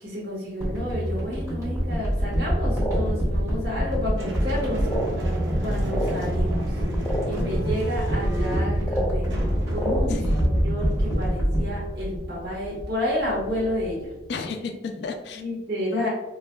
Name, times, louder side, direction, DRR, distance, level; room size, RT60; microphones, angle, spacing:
voice 1, 0.0-5.0 5.6-6.8 7.3-9.3 9.7-14.0 15.3-16.1, left 1 dB, 60° right, -6 dB, 1.3 m, -30 dB
sound 1, 0.6-12.9 13.2-13.4, equal, 15° right, 1.5 m, -26 dB
sound 2, 2.8-3.0 3.9-4.0 4.8-5.2 5.9-6.1 7.0-7.2 8.8-9.1 9.7-10.0, right 1 dB, 10° left, 0.5 m, -28 dB
sound 3, 4.2-14.3, right 1 dB, 90° right, 0.6 m, -34 dB
voice 2, 10.1-10.5 14.3-15.4 15.9-16.1, left 4 dB, 70° left, 5 dB, 0.4 m, -33 dB
4.5 x 2.4 x 2.2 m, 1.0 s
head